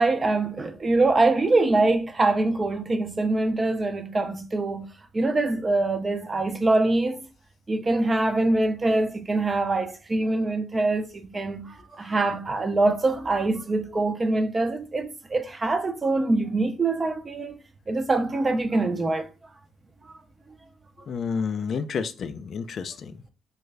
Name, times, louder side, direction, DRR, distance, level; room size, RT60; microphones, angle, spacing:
voice 1, 0.0-4.9 5.1-7.3 7.7-17.6 17.9-19.3, right 2 dB, 30° right, 0.5 m, -24 dB
voice 2, 21.1-23.1, left 6 dB, 55° left, 0.4 m, -30 dB
3.2 x 2.4 x 3.3 m
cardioid pair, 90°, 0 cm